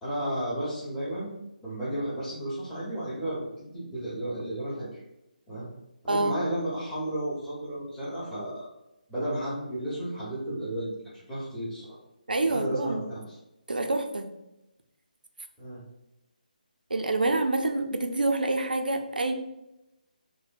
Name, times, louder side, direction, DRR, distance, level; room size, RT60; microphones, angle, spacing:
voice 1, 0.0-1.3 1.6-4.9 5.5-5.7 6.0-8.6 9.1-11.0 11.3-12.0 12.4-13.4 15.6-15.8, right 1 dB, 5° left, -11 dB, 0.9 m, -33 dB
voice 2, 6.1-6.4 12.3-13.1 13.7-14.3 16.9-19.3, right 2 dB, 80° right, 5 dB, 0.4 m, -27 dB
3.5 x 2.2 x 2.5 m, 0.94 s
figure-of-eight pair, 150°, 5 cm